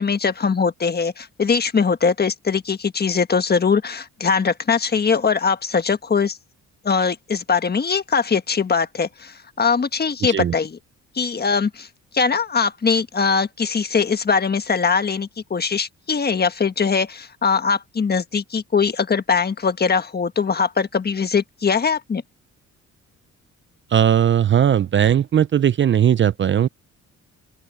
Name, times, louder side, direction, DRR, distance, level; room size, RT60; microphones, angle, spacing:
voice 1, 0.0-6.4 6.8-10.8 11.1-11.9 12.1-22.2, left 5 dB, 30° left, 1.5 m, -21 dB
voice 2, 10.2-10.5 23.9-26.7, right 9 dB, 40° right, 0.6 m, -18 dB
open air
cardioid pair, 90°, 30 cm